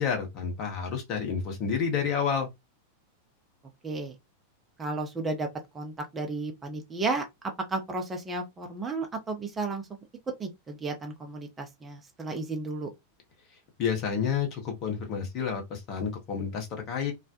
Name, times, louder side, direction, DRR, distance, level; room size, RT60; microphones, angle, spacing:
voice 1, 0.0-2.5 13.8-17.1, left 6 dB, 40° left, 0.8 m, -30 dB
voice 2, 3.8-4.1 4.8-5.5 5.7-7.3 7.7-9.9 10.4-12.9, right 3 dB, 15° right, 0.6 m, -33 dB
2.3 x 2.1 x 2.7 m
figure-of-eight pair, 90°, 0 cm